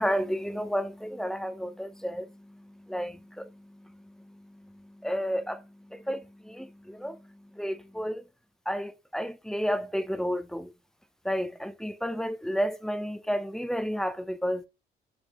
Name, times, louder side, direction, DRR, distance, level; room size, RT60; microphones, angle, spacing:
voice 1, 0.0-8.2 8.7-10.7 11.2-14.7, equal, ahead, 0.7 m, -32 dB
8.8 x 3.6 x 3.0 m
cardioid pair, 90°, 20 cm